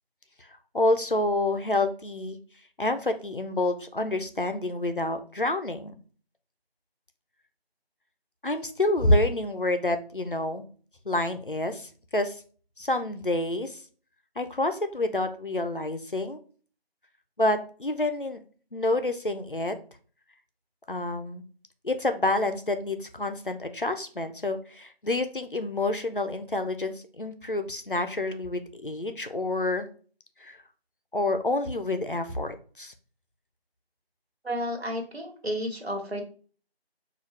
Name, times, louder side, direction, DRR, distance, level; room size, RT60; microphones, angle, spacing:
voice 1, 0.7-2.4 2.8-5.9 8.4-10.6 11.1-12.4 12.8-13.8 14.4-16.4 17.4-18.4 18.7-19.8 20.9-21.4 21.8-29.9 30.4-30.6 31.1-32.9, left 2 dB, 55° left, 8 dB, 0.5 m, -28 dB
voice 2, 34.4-36.2, equal, 80° right, 1 dB, 1.3 m, -32 dB
4.8 x 2.4 x 3.1 m, 0.41 s
figure-of-eight pair, 180°, 31 cm